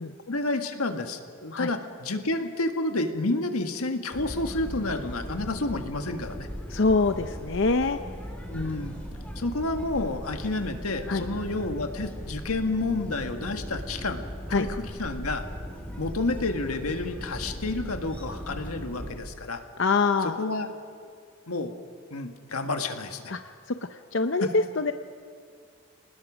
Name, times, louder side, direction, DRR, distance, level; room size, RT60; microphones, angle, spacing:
voice 1, 0.3-6.5 8.5-9.0 9.3-15.4 16.0-19.6 20.2-20.7 21.5-21.7 22.1-23.3 24.4-24.5, left 2 dB, 90° left, 6 dB, 1.7 m, -30 dB
sound 1, 4.1-19.2, equal, 5° left, 3.3 m, -38 dB
voice 2, 6.7-8.0 11.1-11.2 14.5-14.7 19.8-20.4 23.3-23.4 23.7-24.9, left 3 dB, 55° left, 8 dB, 0.6 m, -24 dB
26.5 x 19.5 x 6.3 m, 2.2 s
head